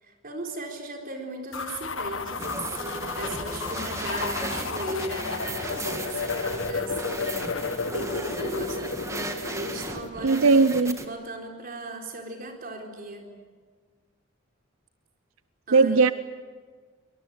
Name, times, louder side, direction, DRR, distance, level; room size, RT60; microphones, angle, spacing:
voice 1, 0.0-7.4 7.9-9.0 9.4-13.3 15.7-16.1, right 1 dB, 45° right, 2 dB, 4.3 m, -37 dB
sound 1, 1.5-10.1, left 4 dB, 65° left, 1.5 m, -32 dB
sound 2, 2.4-11.1, right 2 dB, 15° right, 1.7 m, -36 dB
voice 2, 10.2-11.0 15.7-16.1, right 4 dB, 90° right, 14 dB, 0.7 m, -18 dB
24.5 x 19.0 x 9.5 m, 1.5 s
head